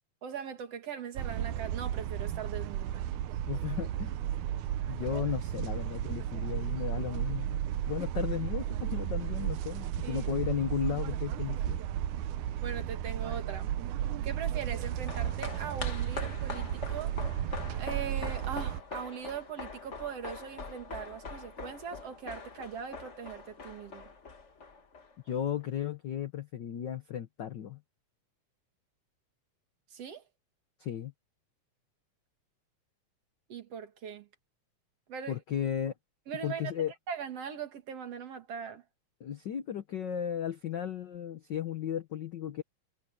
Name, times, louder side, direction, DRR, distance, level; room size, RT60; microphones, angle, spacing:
voice 1, 0.2-3.0 5.1-5.2 10.0-10.2 12.6-13.7 14.2-17.2 17.8-24.1 29.9-30.2 33.5-34.3 35.1-35.4 36.3-36.7 37.1-38.8, right 7 dB, 55° right, 2.8 m, -40 dB
sound 1, 1.2-18.8, right 11 dB, 85° right, 2.3 m, -34 dB
voice 2, 3.5-4.1 4.9-7.6 7.9-11.8 25.2-27.8 30.8-31.1 35.3-35.9 36.4-36.9 39.2-42.6, left 9 dB, 85° left, 0.9 m, -35 dB
sound 2, 14.7-25.3 25.6-25.7, left 4 dB, 35° left, 1.3 m, -43 dB
omnidirectional pair, 3.4 m